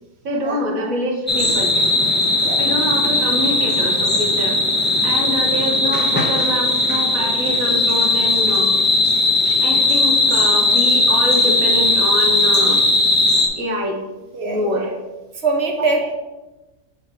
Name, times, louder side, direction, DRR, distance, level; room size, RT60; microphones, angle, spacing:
voice 1, 0.2-1.7 2.6-4.6 5.0-8.7 9.6-12.8 13.6-14.0 14.4-15.0 15.8-16.1, equal, 75° right, 1 dB, 1.5 m, -25 dB
sound 1, 1.3-13.5, left 2 dB, 15° left, 0.4 m, -17 dB
voice 2, 15.4-16.1, right 3 dB, 50° right, 2 dB, 1.0 m, -22 dB
6.4 x 3.9 x 4.4 m, 1.1 s
omnidirectional pair, 1.5 m